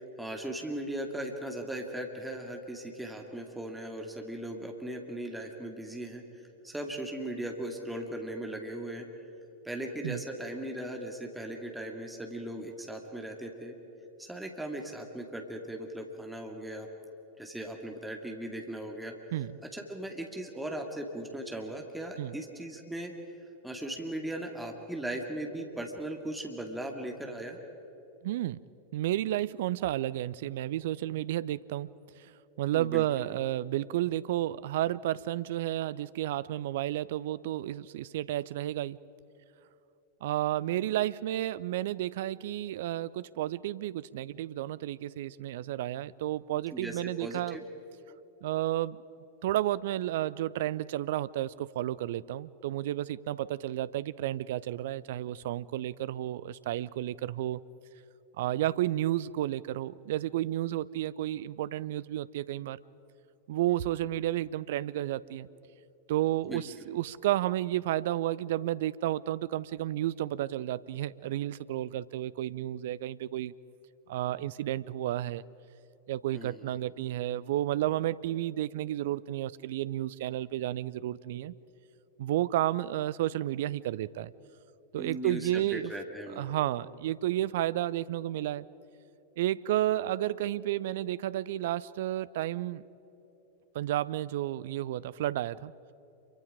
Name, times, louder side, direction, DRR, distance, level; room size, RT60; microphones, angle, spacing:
voice 1, 0.0-6.2 6.6-9.1 9.6-13.7 14.2-16.9 17.4-19.1 19.7-23.1 23.6-27.6 32.7-33.3 46.7-47.6 66.5-66.7 76.3-76.7 85.0-86.5, right 1 dB, 5° right, 2 dB, 2.4 m, -38 dB
voice 2, 19.3-19.6 22.2-22.4 28.2-28.6 28.9-31.9 32.2-32.3 32.6-39.0 40.2-47.6 48.4-49.0 49.4-57.6 58.4-62.8 63.5-65.5 66.1-73.5 74.1-75.4 76.1-81.5 82.2-84.3 84.9-85.9 86.4-88.7 89.4-92.8 93.7-95.7, right 13 dB, 55° right, 19 dB, 0.5 m, -31 dB
28.0 x 24.0 x 5.1 m, 3.0 s
figure-of-eight pair, 90°, 0 cm